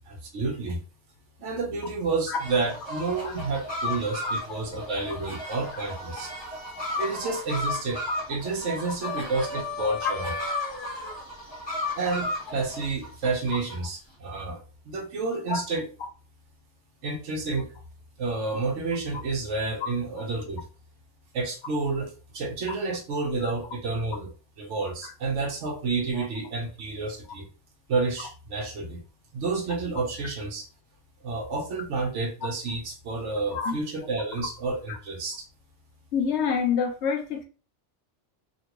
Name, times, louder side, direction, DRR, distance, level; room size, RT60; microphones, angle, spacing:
voice 1, 0.1-0.8 1.4-6.3 7.0-8.0 8.3-10.3 12.0-15.9 17.0-17.7 18.2-20.7 21.3-24.3 24.6-27.5 27.9-29.0 29.3-30.7 31.2-35.4, right 3 dB, 75° right, 1.1 m, -30 dB
sound 1, 2.4-13.8, left 2 dB, 20° left, 1.2 m, -34 dB
voice 2, 36.1-37.4, left 6 dB, 70° left, 0.9 m, -27 dB
2.9 x 2.5 x 2.9 m
omnidirectional pair, 1.2 m